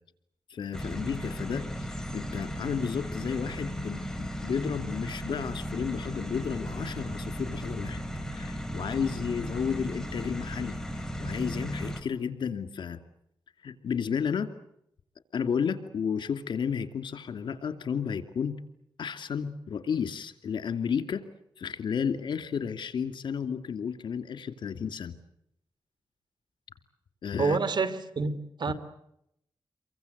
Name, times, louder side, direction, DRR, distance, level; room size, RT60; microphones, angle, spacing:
voice 1, 0.5-8.0 8.3-13.0 13.6-14.5 15.3-18.6 19.0-21.2 21.6-25.1 27.2-27.6 28.7-28.8, left 7 dB, 85° left, 2.5 m, -32 dB
Flatbed Tow Truck Picking Up Car, 0.7-12.0, equal, 5° left, 5.0 m, -36 dB
voice 2, 27.4-28.7, right 4 dB, 65° right, 3.0 m, -28 dB
29.0 x 23.5 x 8.1 m
cardioid pair, 65°, 8 cm